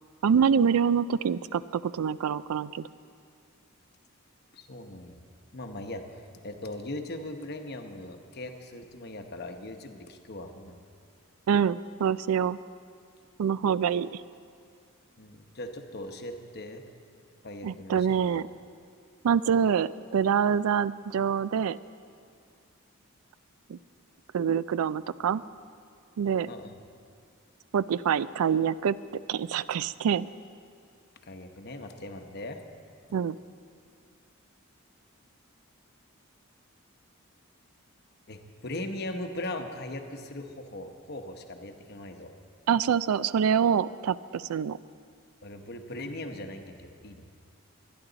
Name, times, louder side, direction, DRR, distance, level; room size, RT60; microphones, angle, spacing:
voice 1, 0.2-2.9 11.5-12.6 13.4-14.2 17.6-18.5 19.2-21.8 23.7-23.8 24.3-25.4 26.2-26.5 27.7-29.0 29.3-30.3 33.1-33.4 42.7-44.8, right 7 dB, 90° right, 17 dB, 0.4 m, -25 dB
voice 2, 4.5-5.2 5.5-6.0 6.4-10.7 15.2-16.8 17.4-18.4 26.5-26.8 31.2-32.6 38.3-42.3 45.4-47.2, left 1 dB, 50° left, 5 dB, 0.9 m, -39 dB
23.0 x 10.5 x 4.0 m, 2.3 s
head